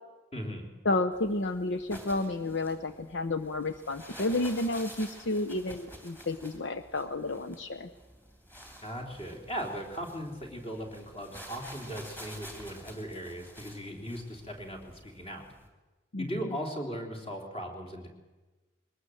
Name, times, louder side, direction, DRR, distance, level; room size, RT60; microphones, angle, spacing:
voice 1, 0.3-0.7 8.8-15.4 16.2-18.1, equal, 30° left, 2 dB, 3.4 m, -38 dB
voice 2, 0.8-7.9 16.1-16.3, left 2 dB, 65° left, 8 dB, 0.8 m, -31 dB
sound 1, 1.1-15.7, equal, 10° left, 3.1 m, -50 dB
22.5 x 19.5 x 7.9 m, 1.2 s
head